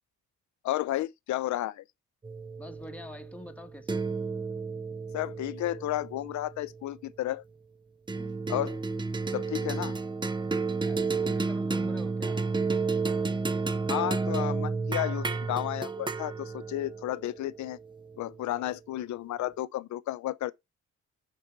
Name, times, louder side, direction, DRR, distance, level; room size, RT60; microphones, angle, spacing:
voice 1, 0.6-1.8 5.1-7.4 8.5-8.8 9.3-10.0 13.9-17.8 18.2-20.5, left 14 dB, 70° left, 0.6 m, -32 dB
sound 1, 2.2-6.9 8.1-18.6, right 4 dB, 15° right, 0.7 m, -32 dB
voice 2, 2.6-4.1 8.1-8.5 10.8-12.4, left 1 dB, 5° left, 1.2 m, -46 dB
6.6 x 5.0 x 4.4 m
cardioid pair, 90°, 30 cm